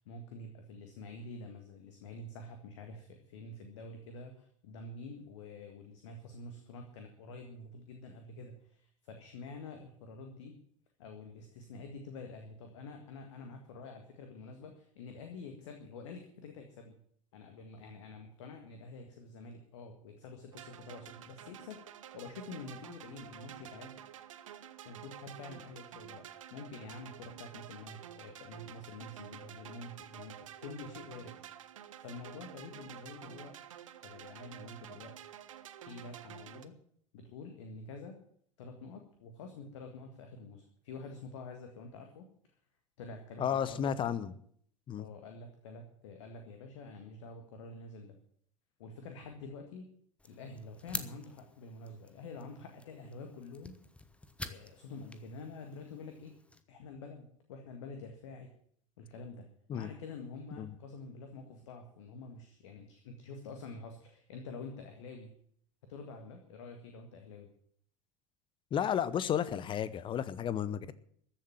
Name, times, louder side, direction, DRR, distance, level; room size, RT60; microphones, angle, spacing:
voice 1, 0.0-10.6 11.0-17.0 17.3-21.8 22.1-24.0 24.9-26.2 26.5-33.6 34.0-35.2 35.9-36.7 37.1-38.2 38.6-42.3 43.0-44.2 45.0-48.2 48.8-49.9 50.2-53.8 54.4-56.3 56.7-58.5 59.0-65.3 65.8-67.5, left 3 dB, 60° left, 5 dB, 1.8 m, -47 dB
sound 1, 20.5-36.7, right 10 dB, 65° right, 0.9 m, -50 dB
voice 2, 43.4-44.3 44.9-45.1 59.7-59.9 60.6-60.7 68.7-70.9, left 9 dB, 30° left, 17 dB, 0.9 m, -32 dB
sound 2, 50.2-56.6, left 2 dB, 5° left, 1.1 m, -48 dB
14.5 x 7.5 x 9.0 m, 0.63 s
figure-of-eight pair, 80°, 18 cm